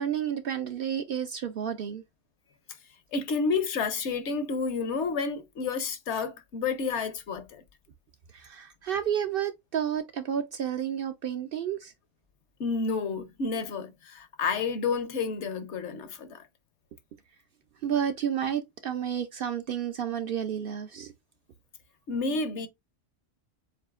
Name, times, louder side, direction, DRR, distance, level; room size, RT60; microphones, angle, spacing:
voice 1, 0.0-2.0 8.3-11.9 17.8-21.1, right 9 dB, 60° right, 0.6 m, -31 dB
voice 2, 3.1-7.6 12.6-16.4 22.1-22.7, left 4 dB, 70° left, 1.0 m, -30 dB
7.2 x 2.7 x 2.3 m
omnidirectional pair, 1.3 m